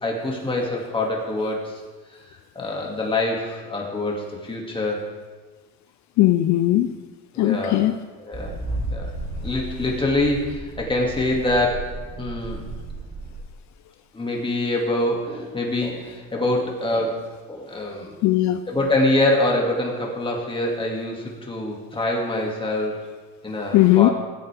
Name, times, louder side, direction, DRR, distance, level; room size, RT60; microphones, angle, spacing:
voice 1, 0.0-1.8 2.1-2.2 2.6-5.1 7.3-7.9 8.2-8.6 8.9-9.1 9.4-11.9 12.2-12.7 14.1-17.2 17.5-18.2 18.7-23.0 23.4-24.1, left 1 dB, 15° left, -1 dB, 2.3 m, -25 dB
voice 2, 6.2-6.9 7.4-7.9 18.2-18.6 23.7-24.1, left 15 dB, 60° left, 10 dB, 0.5 m, -17 dB
sound 1, 8.3-13.4, right 2 dB, 25° right, 2.9 m, -33 dB
16.0 x 8.3 x 3.5 m, 1.4 s
cardioid pair, 120°, 33 cm